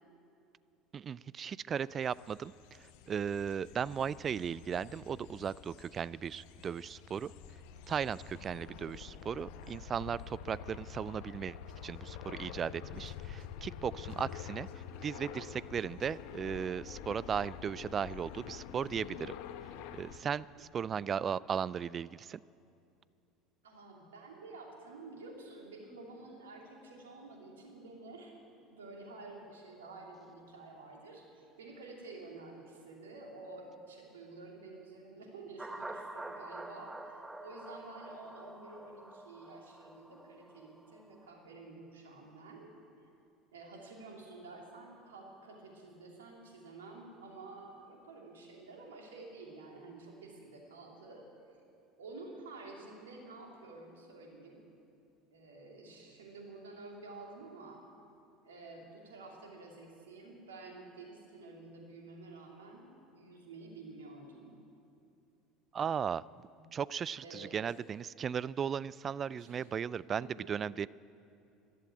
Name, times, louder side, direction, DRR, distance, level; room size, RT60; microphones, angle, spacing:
voice 1, 0.9-2.5 2.8-7.3 7.9-11.6 11.8-14.7 15.0-19.4 19.9-22.4 65.7-70.9, right 7 dB, 35° right, 21 dB, 0.3 m, -36 dB
sound 1, 1.8-20.2, left 8 dB, 65° left, 1.0 m, -47 dB
voice 2, 20.6-21.0 23.6-28.4 28.7-42.7 43.5-51.2 52.0-54.6 55.3-57.8 58.4-64.5 66.6-66.7 67.2-67.6 69.3-69.7 70.2-70.5, right 3 dB, 80° right, 0 dB, 2.8 m, -50 dB
sound 2, 35.6-41.2, right 2 dB, 10° right, 1.0 m, -47 dB
13.5 x 11.5 x 9.2 m, 2.6 s
hypercardioid pair, 70°, 0 cm